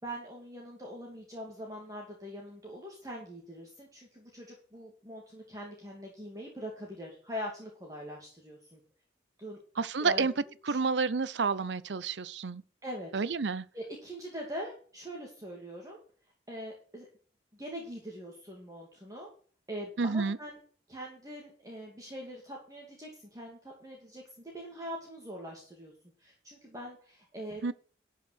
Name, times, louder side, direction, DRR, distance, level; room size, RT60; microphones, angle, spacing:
voice 1, 0.0-8.8 9.4-9.6 10.0-10.3 10.7-10.8 12.8-13.1 13.7-16.0 16.5-17.1 17.5-19.3 19.7-20.6 20.9-25.9 26.2-27.7, equal, 20° right, 2.6 m, -42 dB
voice 2, 9.8-10.3 10.7-12.6 13.1-13.7 20.0-20.4 27.6-27.7, right 4 dB, 85° right, 0.6 m, -29 dB
12.5 x 5.6 x 6.4 m
head